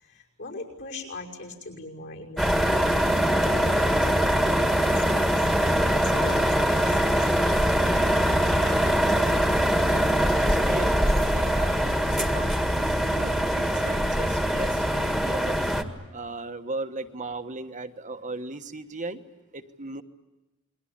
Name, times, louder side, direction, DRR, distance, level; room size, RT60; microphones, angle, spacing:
voice 1, 0.0-2.9 3.4-7.2 8.3-8.6 11.3-11.5, left 2 dB, 60° left, 0 dB, 5.9 m, -39 dB
sound 1, 2.4-15.8, equal, ahead, 1.8 m, -23 dB
voice 2, 9.5-10.0 10.4-12.5 13.1-15.6 16.1-19.2 19.5-20.0, right 2 dB, 35° right, 8 dB, 1.3 m, -37 dB
29.0 x 22.5 x 8.7 m, 1.0 s
head